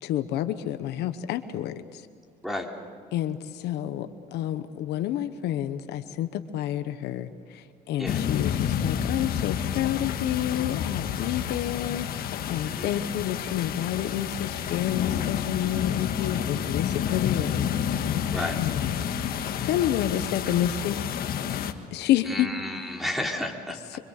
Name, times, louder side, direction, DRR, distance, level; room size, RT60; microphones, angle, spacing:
voice 1, 0.0-2.0 3.1-17.7 18.6-19.0 19.6-21.0 21.9-22.5 23.9-24.0, left 11 dB, 80° left, 10 dB, 1.1 m, -29 dB
sound 1, 8.1-21.7, left 9 dB, 65° left, 1.6 m, -29 dB
voice 2, 12.6-13.1 18.3-18.6 22.2-23.8, left 1 dB, ahead, 1 dB, 3.5 m, -32 dB
25.0 x 25.0 x 6.6 m, 2.1 s
cardioid pair, 110°, 17 cm